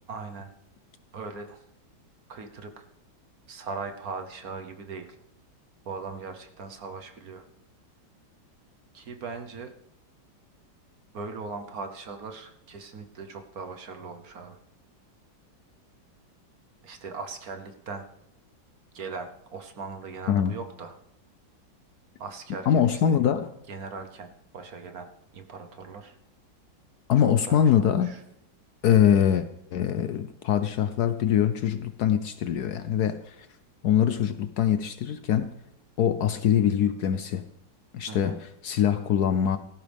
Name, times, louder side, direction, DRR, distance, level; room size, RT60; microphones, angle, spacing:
voice 1, 0.1-0.5 1.1-1.6 2.3-2.8 3.5-5.1 5.8-7.4 8.9-9.7 11.1-14.6 16.8-18.1 18.9-21.0 22.2-23.2 23.7-26.2 27.5-28.2 38.1-38.4, right 4 dB, 55° right, 1.4 m, -39 dB
voice 2, 22.7-23.5 27.1-28.1 28.8-33.4 33.8-35.5 36.0-37.4 37.9-39.6, left 9 dB, 65° left, 1.0 m, -23 dB
17.5 x 14.5 x 3.5 m
omnidirectional pair, 2.1 m